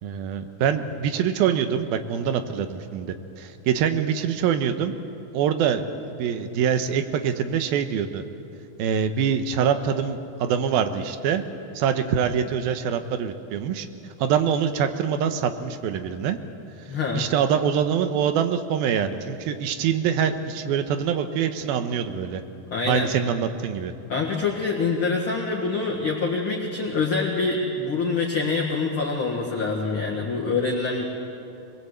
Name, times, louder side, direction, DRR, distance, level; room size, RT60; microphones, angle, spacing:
voice 1, 0.0-4.9 5.3-8.2 8.8-11.4 11.7-13.9 14.2-16.4 17.1-22.4 22.9-23.9, right 8 dB, 85° right, 9 dB, 2.8 m, -24 dB
voice 2, 16.9-17.3 22.7-23.1 24.1-31.1, left 4 dB, 45° left, -1 dB, 1.9 m, -25 dB
22.5 x 22.0 x 8.0 m, 2.7 s
omnidirectional pair, 4.3 m